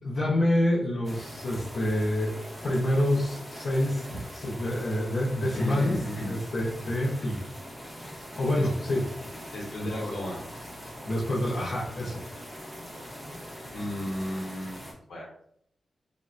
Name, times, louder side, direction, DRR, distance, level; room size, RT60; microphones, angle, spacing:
voice 1, 0.0-2.3 2.6-4.1 4.3-6.0 6.3-7.4 8.4-9.1 9.8-10.2 11.0-12.2, left 1 dB, 60° left, -7 dB, 0.7 m, -27 dB
sound 1, 1.0-14.9, equal, ahead, 0.6 m, -42 dB
voice 2, 5.4-6.3 8.5-8.7 9.5-10.4 13.7-14.8 15.1-15.3, equal, 85° left, -2 dB, 0.9 m, -34 dB
3.4 x 2.1 x 2.5 m, 0.68 s
wide cardioid pair, 170°, 0 cm